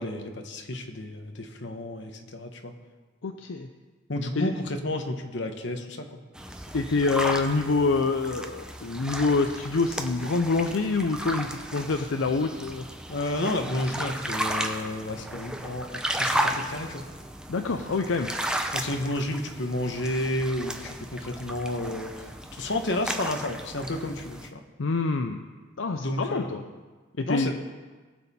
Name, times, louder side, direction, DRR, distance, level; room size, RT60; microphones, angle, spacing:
voice 1, 0.0-2.7 4.1-6.2 13.1-17.0 18.7-22.3 22.5-24.6 26.0-26.5 27.2-27.6, left 1 dB, 60° left, 5 dB, 1.1 m, -31 dB
voice 2, 3.2-3.7 4.4-4.5 6.7-12.9 17.5-18.3 24.8-25.4 25.8-26.6 27.2-27.5, left 3 dB, 75° left, 6 dB, 0.6 m, -26 dB
sound 1, 6.3-24.5, right 1 dB, 5° right, 0.6 m, -34 dB
19.5 x 7.2 x 4.3 m, 1.4 s
head